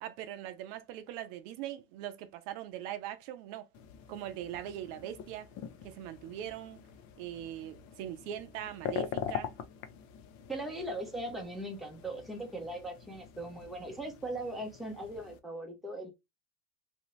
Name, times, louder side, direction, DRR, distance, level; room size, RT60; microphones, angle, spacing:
voice 1, 0.0-3.7 4.1-5.5 5.8-6.8 7.2-9.5, right 11 dB, 65° right, 0.7 m, -41 dB
sound 1, 3.7-15.4, left 8 dB, 45° left, 0.6 m, -44 dB
voice 2, 10.5-16.1, right 1 dB, ahead, 0.6 m, -39 dB
2.8 x 2.6 x 3.1 m
supercardioid pair, 130°, 39 cm